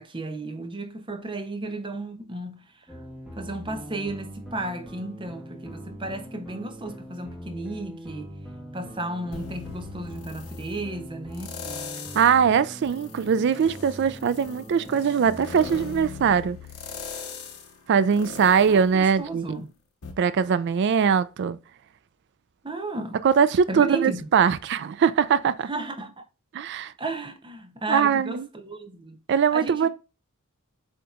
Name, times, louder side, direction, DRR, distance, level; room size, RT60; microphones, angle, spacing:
voice 1, 0.0-3.0 3.4-8.3 8.7-11.6 18.7-19.7 22.6-23.2 23.7-24.3 25.7-26.2 27.0-29.2 29.5-29.9, right 2 dB, 20° right, 0.7 m, -34 dB
sound 1, 2.9-15.8, equal, 5° right, 1.3 m, -41 dB
sound 2, 9.3-10.7 11.3-12.4 12.9-19.6 20.0-20.1, left 5 dB, 80° left, 0.9 m, -40 dB
voice 2, 12.1-16.6 17.9-19.6 20.2-21.6 23.2-25.7 26.5-26.9 27.9-28.4 29.3-29.9, right 7 dB, 50° right, 0.3 m, -21 dB
7.7 x 2.9 x 2.4 m
head